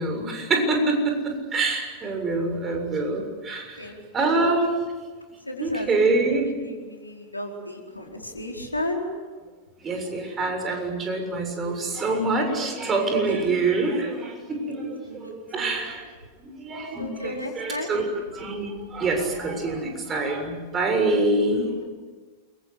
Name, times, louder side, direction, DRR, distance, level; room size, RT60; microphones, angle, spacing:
voice 1, 0.0-4.8 5.6-6.4 9.8-16.1 16.4-18.1 18.3-21.8, right 2 dB, 25° right, 3 dB, 6.9 m, -25 dB
voice 2, 3.8-4.4 5.5-9.0 13.3-13.5 14.6-15.7 17.0-17.9, left 1 dB, 85° left, 0 dB, 4.7 m, -35 dB
29.0 x 24.0 x 8.4 m, 1.4 s
figure-of-eight pair, 90°, 0 cm